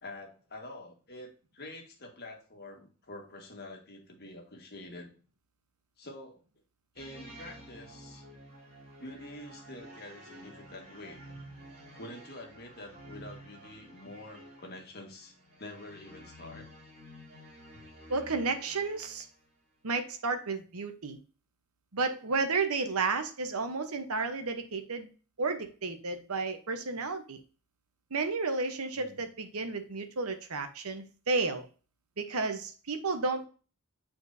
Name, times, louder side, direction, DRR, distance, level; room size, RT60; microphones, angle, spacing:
voice 1, 0.0-5.1 6.0-6.4 6.9-8.2 9.0-11.2 12.0-15.3 15.6-16.7 28.9-29.2, left 1 dB, 45° left, 1 dB, 1.7 m, -47 dB
sound 1, 7.0-19.5, equal, 40° right, 3.4 m, -51 dB
voice 2, 18.1-19.3 19.8-21.2 21.9-25.1 25.4-27.4 28.1-31.7 32.2-33.5, right 3 dB, 85° right, 7 dB, 1.0 m, -32 dB
8.7 x 4.5 x 2.7 m, 0.36 s
head